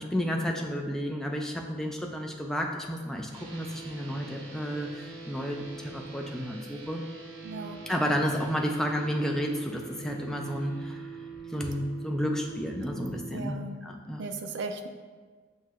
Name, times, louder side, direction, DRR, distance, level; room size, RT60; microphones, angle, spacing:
voice 1, 0.0-7.0 7.9-11.0 11.5-13.6 13.8-14.2, equal, ahead, 1 dB, 0.4 m, -31 dB
sound 1, 3.3-13.3, right 5 dB, 80° right, 0.8 m, -44 dB
voice 2, 7.4-7.8 13.3-13.8 14.2-14.9, right 3 dB, 60° right, 7 dB, 0.4 m, -36 dB
7.4 x 2.7 x 2.4 m, 1.5 s
head